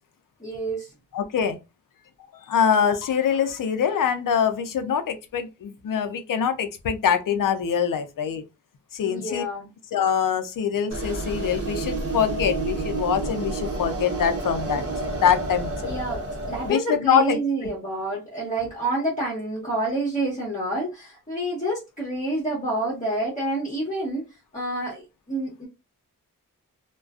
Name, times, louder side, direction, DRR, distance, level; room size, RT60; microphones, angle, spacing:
voice 1, 0.4-0.9 9.1-9.7 15.8-24.2 24.5-25.7, right 1 dB, 20° left, 1.1 m, -28 dB
voice 2, 1.1-1.6 2.5-8.4 8.9-9.4 9.9-14.8 15.2-15.9 16.7-17.4, left 7 dB, 70° left, 0.5 m, -24 dB
sound 1, 10.9-16.7, right 2 dB, 45° right, 0.8 m, -30 dB
2.3 x 2.2 x 2.3 m
cardioid pair, 60°, 33 cm